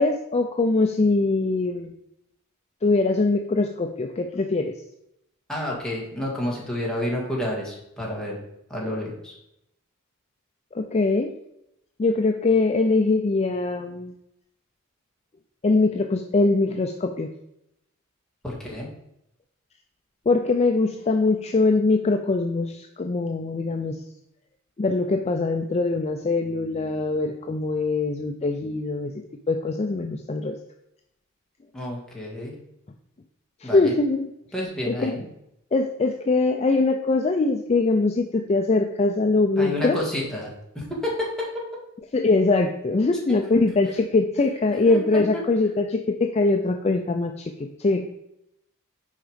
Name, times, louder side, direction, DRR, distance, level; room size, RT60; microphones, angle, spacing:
voice 1, 0.0-1.9 2.8-4.7 10.7-11.3 12.0-14.1 15.6-17.3 20.3-24.0 24.8-29.2 29.5-30.5 33.6-34.3 34.9-35.1 35.7-40.1 42.1-48.1, left 3 dB, 30° left, 5 dB, 0.4 m, -22 dB
voice 2, 5.5-8.4 8.7-9.4 18.4-18.9 31.7-32.5 33.6-33.9 34.5-35.2 39.6-41.5 44.9-45.2, left 1 dB, 5° left, -4 dB, 1.8 m, -30 dB
6.4 x 4.8 x 5.0 m, 0.81 s
head